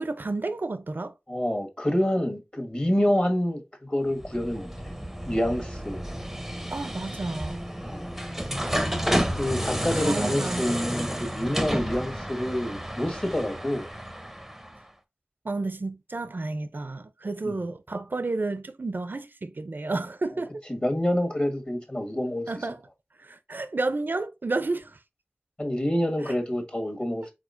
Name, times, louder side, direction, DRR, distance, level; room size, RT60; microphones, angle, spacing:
voice 1, 0.0-1.1 6.7-7.6 9.9-10.7 15.4-20.6 22.5-22.8 23.2-25.0 26.2-26.3, right 3 dB, 60° right, 0.4 m, -31 dB
voice 2, 1.3-4.7 5.2-6.0 7.8-8.1 9.3-13.8 17.4-17.6 20.7-22.5 25.6-27.3, left 1 dB, 30° left, 1.4 m, -27 dB
sound 1, 4.1-14.8, equal, 5° right, 0.7 m, -31 dB
4.9 x 4.2 x 2.5 m
wide cardioid pair, 60°, 4 cm